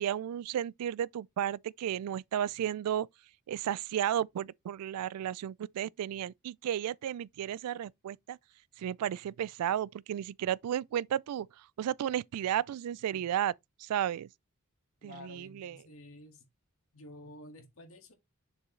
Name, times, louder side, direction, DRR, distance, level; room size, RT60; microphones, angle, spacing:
voice 1, 0.0-3.1 3.5-8.4 8.8-11.5 11.8-13.5 13.8-14.3 15.0-15.8, right 10 dB, 85° right, 0.3 m, -33 dB
voice 2, 15.0-16.4 16.9-18.1, left 1 dB, 65° left, 1.8 m, -51 dB
6.9 x 4.5 x 3.2 m
head